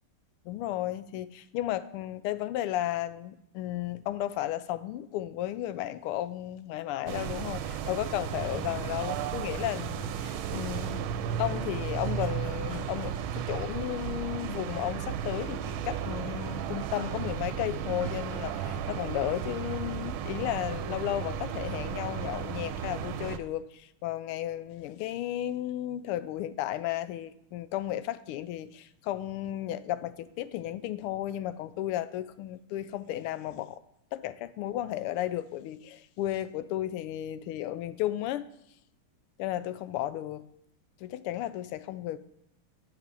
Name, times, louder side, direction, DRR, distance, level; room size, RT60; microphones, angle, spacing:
voice 1, 0.4-11.1 11.4-33.8 34.1-38.5 39.4-40.4 41.0-42.2, left 13 dB, 85° left, 1.5 m, -34 dB
sound 1, 7.1-23.4, right 8 dB, 75° right, 1.3 m, -34 dB
sound 2, 10.7-14.9, right 2 dB, 25° right, 1.4 m, -52 dB
7.8 x 6.0 x 7.0 m
omnidirectional pair, 2.4 m